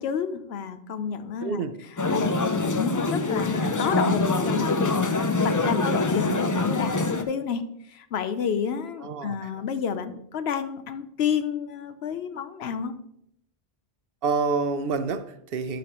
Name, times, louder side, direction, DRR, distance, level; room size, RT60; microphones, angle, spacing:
voice 1, 0.0-1.6 2.1-12.9, left 7 dB, 85° left, 11 dB, 0.9 m, -30 dB
voice 2, 1.4-1.7 9.0-9.5 14.2-15.8, right 4 dB, 70° right, 11 dB, 0.8 m, -28 dB
sound 1, 2.0-7.2, left 3 dB, 35° left, 0.3 m, -24 dB
11.5 x 5.1 x 3.0 m, 0.74 s
omnidirectional pair, 1.0 m